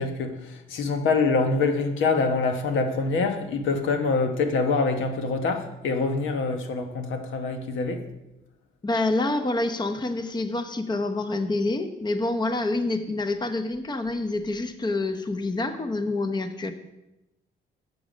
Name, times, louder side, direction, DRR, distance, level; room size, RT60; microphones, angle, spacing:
voice 1, 0.0-8.0, left 4 dB, 80° left, 6 dB, 1.1 m, -25 dB
voice 2, 8.8-16.7, left 2 dB, 20° left, 9 dB, 0.8 m, -27 dB
8.4 x 7.0 x 5.1 m, 0.94 s
cardioid pair, 90°, 20 cm